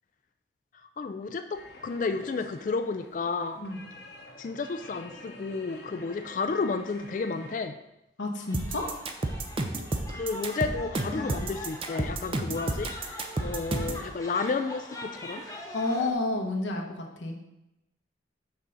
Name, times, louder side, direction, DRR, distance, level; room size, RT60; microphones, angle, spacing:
voice 1, 1.0-3.6 4.4-7.8 10.1-12.9 13.4-15.4, left 4 dB, 45° left, 8 dB, 0.3 m, -31 dB
sound 1, 1.5-7.6, left 2 dB, 65° left, 0.9 m, -48 dB
voice 2, 8.2-8.9 11.1-11.4 15.7-17.4, left 2 dB, 90° left, 2 dB, 1.0 m, -30 dB
sound 2, 8.4-16.1, left 1 dB, 20° left, 1.0 m, -43 dB
sound 3, 8.5-14.0, right 2 dB, 30° right, 0.5 m, -31 dB
6.0 x 3.8 x 5.6 m, 0.88 s
head